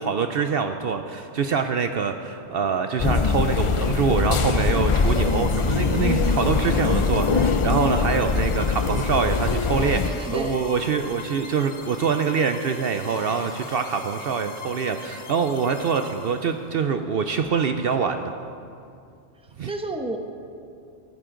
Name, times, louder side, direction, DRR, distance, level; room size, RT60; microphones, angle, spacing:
voice 1, 0.0-18.3 19.6-19.7, right 6 dB, 60° right, 7 dB, 0.7 m, -25 dB
sound 1, 3.0-10.1, left 4 dB, 55° left, 0.3 m, -22 dB
sound 2, 4.9-16.7, left 5 dB, 70° left, 1.2 m, -41 dB
voice 2, 10.0-10.6 19.7-20.2, right 2 dB, 5° right, 4 dB, 0.8 m, -30 dB
15.0 x 14.5 x 3.8 m, 2.5 s
omnidirectional pair, 1.2 m